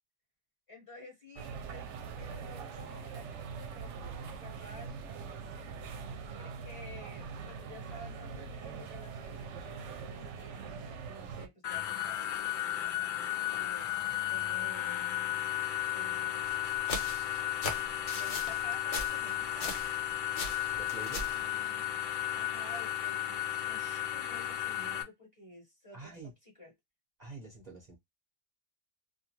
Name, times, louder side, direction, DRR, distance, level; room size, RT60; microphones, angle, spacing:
voice 1, 0.7-5.0 6.3-13.1 13.5-15.2 15.9-16.5 18.1-19.8 21.3-22.0 22.3-26.7, left 1 dB, 30° left, 1.1 m, -52 dB
Queen Victoria market, 1.4-11.5, right 5 dB, 80° right, 0.9 m, -43 dB
sound 1, 11.6-25.0, left 12 dB, 60° left, 0.5 m, -34 dB
sound 2, 16.4-20.0 20.3-21.4, left 3 dB, 75° left, 1.1 m, -39 dB
voice 2, 20.7-21.3 25.9-26.3 27.2-28.0, right 3 dB, 40° right, 0.8 m, -47 dB
2.7 x 2.3 x 2.8 m
omnidirectional pair, 1.2 m